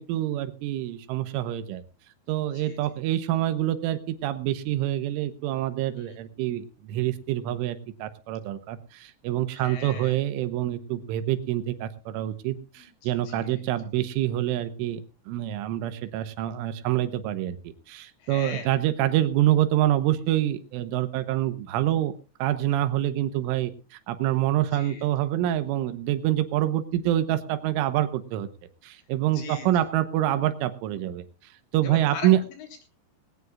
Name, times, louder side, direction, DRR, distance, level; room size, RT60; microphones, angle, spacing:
voice 1, 0.0-1.8 2.3-22.1 22.4-28.5 28.8-31.3 31.7-32.4, right 13 dB, 85° right, 12 dB, 3.5 m, -26 dB
voice 2, 9.5-10.2 12.8-13.6 18.2-18.7 24.7-25.1 29.3-29.7 31.8-32.8, left 6 dB, 70° left, 5 dB, 5.4 m, -41 dB
20.0 x 17.5 x 2.4 m, 0.32 s
omnidirectional pair, 5.6 m